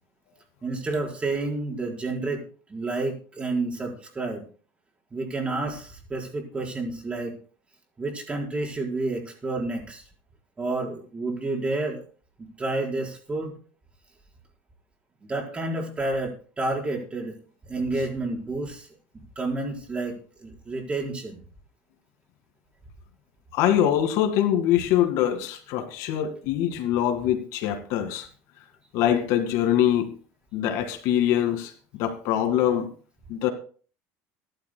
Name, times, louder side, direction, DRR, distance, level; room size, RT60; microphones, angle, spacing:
voice 1, 0.6-2.4 2.7-4.4 5.1-7.3 8.0-10.0 10.6-12.0 12.4-13.5 15.3-17.4 17.6-18.9 19.3-21.4, right 2 dB, 20° right, -1 dB, 5.0 m, -30 dB
voice 2, 23.5-28.3 28.9-30.1 30.5-32.9 33.3-33.5, left 11 dB, 65° left, 6 dB, 2.1 m, -23 dB
24.0 x 12.0 x 2.3 m, 0.40 s
supercardioid pair, 125°, 6 cm